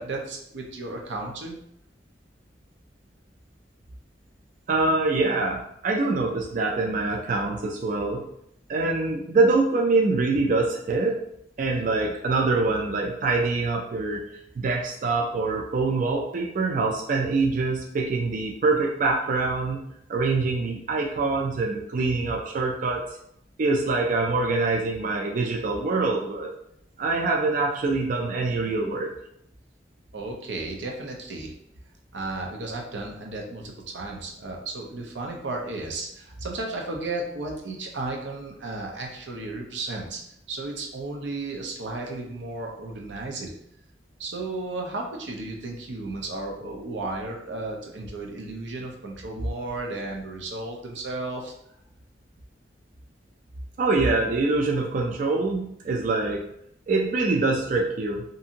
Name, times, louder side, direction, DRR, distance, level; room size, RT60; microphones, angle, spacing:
voice 1, 0.0-1.6 30.1-31.5 32.1-40.2 40.5-43.5 44.2-51.5, right 2 dB, 90° right, 0 dB, 0.6 m, -34 dB
voice 2, 4.7-8.3 8.7-11.2 11.6-14.2 14.6-19.8 20.1-23.0 23.6-26.5 27.0-29.1 53.8-56.5 56.9-58.2, right 3 dB, 45° right, 0 dB, 0.3 m, -24 dB
2.7 x 2.5 x 2.7 m, 0.73 s
head